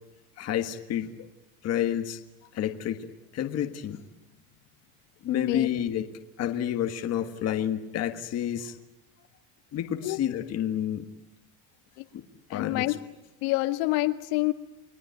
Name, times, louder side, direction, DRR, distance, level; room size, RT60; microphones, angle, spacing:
voice 1, 0.4-1.1 1.6-2.2 2.5-3.1 3.3-4.0 5.2-6.1 6.4-8.7 9.7-11.1 12.1-12.2 12.5-12.9, left 10 dB, 30° left, 6 dB, 1.5 m, -29 dB
voice 2, 5.3-5.7 10.0-10.2 12.0-12.1 12.5-13.0 13.4-14.5, left 20 dB, 75° left, 7 dB, 2.1 m, -27 dB
30.0 x 21.5 x 9.3 m, 0.97 s
cardioid pair, 180°, 49 cm